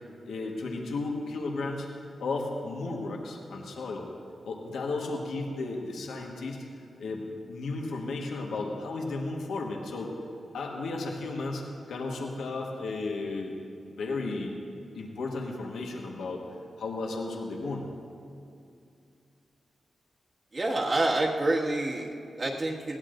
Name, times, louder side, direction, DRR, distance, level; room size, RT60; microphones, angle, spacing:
voice 1, 0.3-1.9 2.2-4.1 4.4-6.7 7.0-10.1 10.5-14.6 14.9-16.4 16.8-17.9, left 3 dB, 90° left, 0 dB, 1.4 m, -34 dB
voice 2, 20.5-23.0, right 2 dB, 40° right, -2 dB, 1.9 m, -28 dB
20.0 x 16.5 x 2.6 m, 2.5 s
cardioid pair, 75°, 0 cm